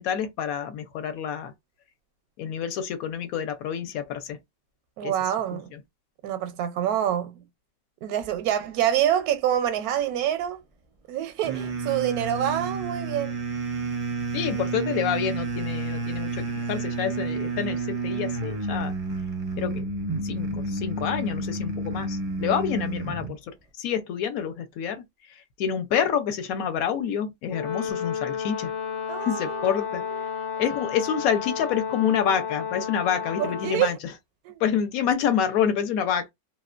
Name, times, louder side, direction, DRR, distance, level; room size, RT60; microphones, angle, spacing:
voice 1, 0.0-1.5 2.4-4.4 5.0-5.1 5.5-5.8 14.3-18.9 19.6-19.8 20.2-28.7 29.2-30.0 30.6-34.0 34.6-36.3, left 8 dB, 75° left, 1.0 m, -28 dB
voice 2, 5.0-5.7 6.2-7.4 8.0-10.6 11.1-13.3 29.1-29.9 33.4-34.0 34.5-34.6, right 11 dB, 85° right, 1.1 m, -26 dB
sound 1, 11.4-23.3, right 3 dB, 50° right, 0.4 m, -30 dB
Brass instrument, 27.5-33.9, left 7 dB, 50° left, 0.7 m, -32 dB
2.6 x 2.1 x 2.3 m
omnidirectional pair, 1.6 m